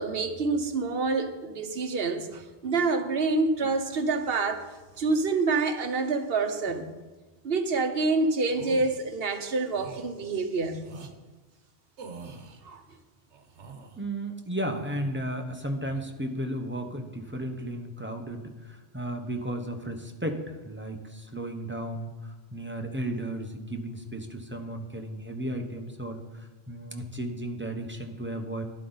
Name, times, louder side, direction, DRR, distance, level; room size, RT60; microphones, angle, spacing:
voice 1, 0.0-4.7 5.0-6.9 7.4-10.8 12.6-12.8, right 3 dB, 60° right, 1.1 m, -27 dB
sound 1, 8.5-8.9 9.7-10.1 10.8-11.1 12.0-12.6 13.3-14.0 14.6-15.3 15.6-16.0, right 4 dB, 85° right, 1.3 m, -45 dB
voice 2, 14.0-28.6, right 1 dB, 10° right, 0.9 m, -34 dB
12.0 x 12.0 x 4.0 m
omnidirectional pair, 1.2 m